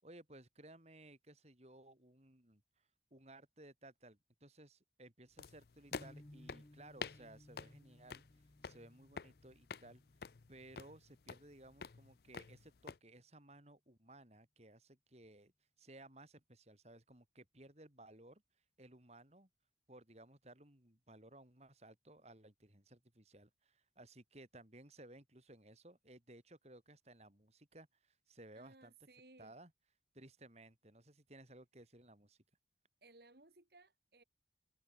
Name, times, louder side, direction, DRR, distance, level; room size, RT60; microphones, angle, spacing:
voice 1, 0.0-8.2 8.6-10.0 10.5-15.5 15.8-18.4 18.8-19.5 19.9-28.9 29.4-29.7 30.1-32.4, right 1 dB, 35° right, 4.3 m, -59 dB
sound 1, 5.4-13.0, left 5 dB, 60° left, 0.5 m, -50 dB
sound 2, 5.9-12.0, left 1 dB, 25° left, 1.0 m, -62 dB
voice 2, 28.5-29.6 33.0-34.2, right 2 dB, 60° right, 2.4 m, -62 dB
head